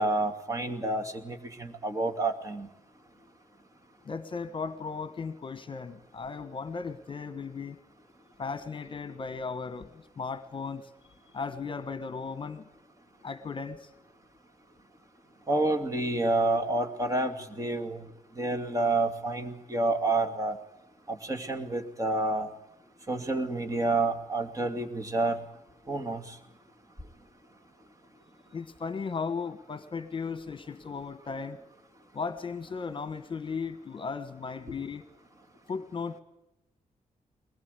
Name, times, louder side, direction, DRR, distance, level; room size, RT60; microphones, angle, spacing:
voice 1, 0.0-2.7 15.5-18.1 18.4-20.6 21.1-22.5 23.1-25.4 25.9-26.4, right 2 dB, 25° right, 5 dB, 2.6 m, -29 dB
voice 2, 4.0-7.8 8.4-10.9 11.3-12.6 13.2-13.9 28.5-31.6 32.1-35.1 35.7-36.2, left 5 dB, 40° left, 12 dB, 1.3 m, -36 dB
22.5 x 20.5 x 8.3 m, 0.86 s
cardioid pair, 115°, 13 cm